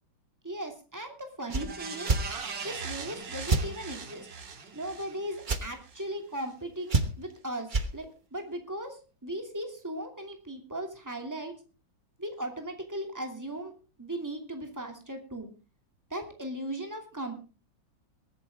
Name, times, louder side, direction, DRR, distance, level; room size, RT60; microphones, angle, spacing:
voice 1, 0.4-2.1 2.6-4.3 4.7-11.5 12.2-13.7 14.0-15.5 16.1-17.3, right 1 dB, 10° right, 3 dB, 2.6 m, -37 dB
sound 1, 1.5-1.7 2.0-2.2 3.5-3.7 5.4-5.6 6.9-7.3 7.7-7.9, right 3 dB, 30° right, 1.0 m, -26 dB
sound 2, 1.5-6.0 6.4-6.5, right 5 dB, 65° right, 2.5 m, -40 dB
22.0 x 9.7 x 3.6 m, 0.34 s
omnidirectional pair, 2.1 m